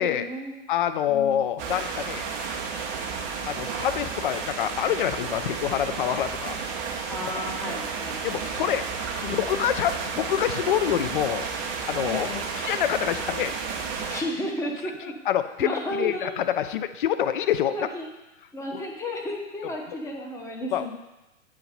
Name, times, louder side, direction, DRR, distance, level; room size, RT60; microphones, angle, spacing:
voice 1, 0.0-0.5 1.1-1.5 7.1-8.5 9.2-9.4 9.8-10.1 12.0-12.5 14.1-15.1 15.6-16.4 17.6-18.1 18.5-20.9, left 1 dB, 10° left, 1 dB, 0.7 m, -33 dB
voice 2, 0.7-2.3 3.5-6.6 8.2-8.8 9.4-11.5 11.9-12.3 12.6-13.5 15.3-17.7 18.7-18.8 20.7-20.8, left 10 dB, 45° left, 11 dB, 0.5 m, -26 dB
sound 1, 1.6-14.2, right 5 dB, 15° right, 0.4 m, -32 dB
8.6 x 4.6 x 4.2 m, 1.0 s
figure-of-eight pair, 110°, 38 cm